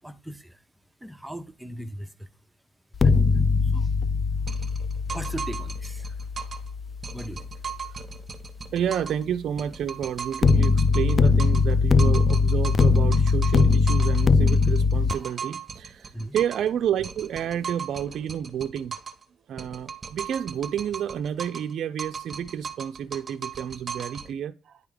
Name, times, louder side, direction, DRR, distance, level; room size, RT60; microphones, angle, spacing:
voice 1, 0.0-0.6 1.0-2.3 3.0-3.9 4.4-6.7 7.1-7.8 8.6-8.7 16.1-16.4, right 1 dB, 5° right, 0.6 m, -40 dB
sound 1, 2.9-8.0 10.4-15.1, left 4 dB, 40° left, 0.4 m, -21 dB
sound 2, 4.5-6.7 7.0-9.2 9.6-11.7 12.0-16.7 17.0-19.2 19.6-21.7 22.0-24.3, right 6 dB, 35° right, 0.8 m, -38 dB
voice 2, 8.7-19.0 19.5-24.8, right 9 dB, 70° right, 0.3 m, -30 dB
9.5 x 3.5 x 3.4 m
cardioid pair, 90°, 0 cm